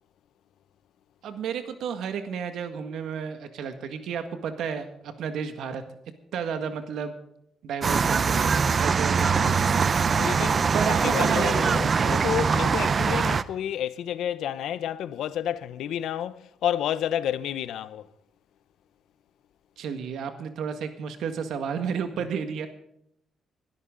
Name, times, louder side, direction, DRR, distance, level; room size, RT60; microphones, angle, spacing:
voice 1, 1.2-5.8 6.3-7.2 7.6-8.5 8.8-9.9 10.7-12.2 19.8-22.7, right 7 dB, 75° right, 1.8 m, -32 dB
sound 1, 7.8-13.4, right 5 dB, 35° right, 0.5 m, -23 dB
voice 2, 9.2-10.7 11.0-18.1, left 10 dB, 80° left, 0.7 m, -30 dB
21.5 x 12.5 x 3.9 m
cardioid pair, 140°, 0 cm